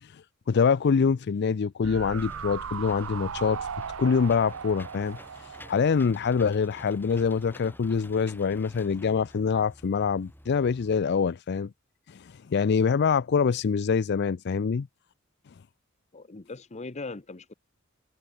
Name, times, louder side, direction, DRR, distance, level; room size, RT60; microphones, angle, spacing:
voice 1, 0.0-3.7 4.0-11.7 12.1-14.9, left 5 dB, 55° left, 0.4 m, -25 dB
sound 1, 1.8-7.1 7.4-7.5, right 6 dB, 70° right, 0.6 m, -38 dB
Engine / Mechanisms, 2.0-10.9, left 1 dB, 10° left, 3.8 m, -50 dB
voice 2, 16.1-17.5, left 3 dB, 35° left, 0.9 m, -39 dB
head